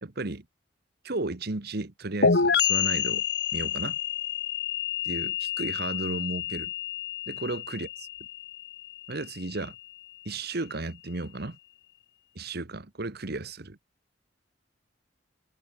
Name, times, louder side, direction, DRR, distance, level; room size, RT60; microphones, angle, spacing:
voice 1, 0.0-0.4 1.0-3.2 3.5-4.0 5.0-6.7 7.3-8.1 9.1-9.7 10.2-11.6 12.3-13.8, right 2 dB, 60° right, 1.4 m, -34 dB
sound 1, 2.2-9.8, left 7 dB, 65° left, 1.6 m, -28 dB
head